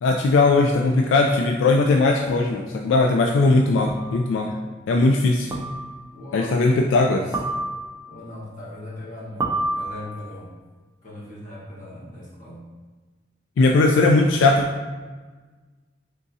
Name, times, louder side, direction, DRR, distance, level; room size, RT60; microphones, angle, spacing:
voice 1, 0.0-4.5 4.9-5.5 6.3-7.3 13.6-14.7, left 3 dB, 75° left, 2 dB, 0.3 m, -19 dB
sound 1, 2.3-2.4 3.9-4.2 5.5-6.1 7.3-8.1 9.4-10.3, right 2 dB, 15° right, 0.5 m, -29 dB
voice 2, 6.1-6.6 8.1-10.5 11.0-12.6, left 1 dB, 45° left, -6 dB, 1.2 m, -39 dB
4.0 x 3.6 x 2.6 m, 1.4 s
head